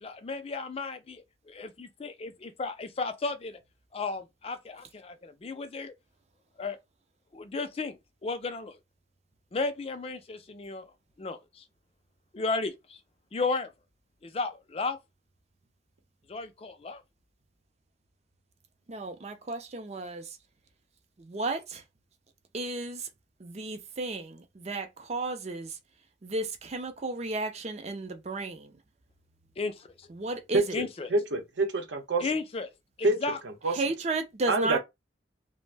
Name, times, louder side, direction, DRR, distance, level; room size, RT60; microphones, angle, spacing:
voice 1, 0.0-1.2 1.5-3.6 3.9-5.9 6.6-6.8 7.3-8.8 9.5-10.8 11.2-11.6 12.3-13.0 13.3-13.7 14.2-15.0 16.3-17.0 29.6-30.1 30.7-31.1 32.2-32.7 33.0-33.4, left 3 dB, 30° left, 0.4 m, -34 dB
voice 2, 18.9-20.2 21.2-21.8 22.5-23.1 23.4-25.7 26.2-28.7 30.1-30.8 33.7-34.8, right 2 dB, 35° right, 0.4 m, -33 dB
voice 3, 30.5-30.8 31.1-32.2 33.0-33.2 33.6-33.8 34.5-34.8, right 2 dB, 75° right, 0.7 m, -26 dB
2.5 x 2.0 x 3.3 m
head